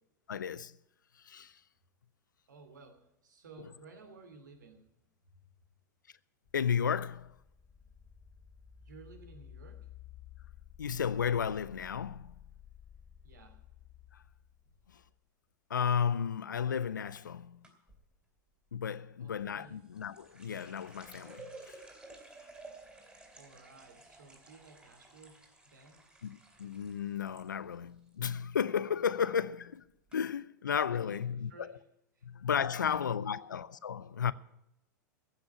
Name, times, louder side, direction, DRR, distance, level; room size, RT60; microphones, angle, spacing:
voice 1, 0.3-0.7 1.2-1.6 6.5-7.4 10.8-12.4 14.1-14.2 14.9-15.0 15.7-17.6 18.7-21.8 26.2-29.9 30.1-31.7 32.2-34.3, left 7 dB, 85° left, 0.6 m, -33 dB
voice 2, 2.5-5.1 5.4-5.5 8.8-9.9 13.2-13.6 19.2-19.8 23.3-26.1 30.1-30.2 30.9-31.8 32.1-32.3 32.7-33.5, right 3 dB, 75° right, 2.8 m, -55 dB
sound 1, 6.5-15.2, left 9 dB, 25° left, 2.5 m, -54 dB
sound 2, 17.6-18.0 19.5-27.4 27.7-28.3 28.7-29.0 29.7-29.8 30.1-30.2, right 2 dB, 10° right, 3.6 m, -54 dB
15.0 x 6.1 x 9.8 m
hypercardioid pair, 100°, 10 cm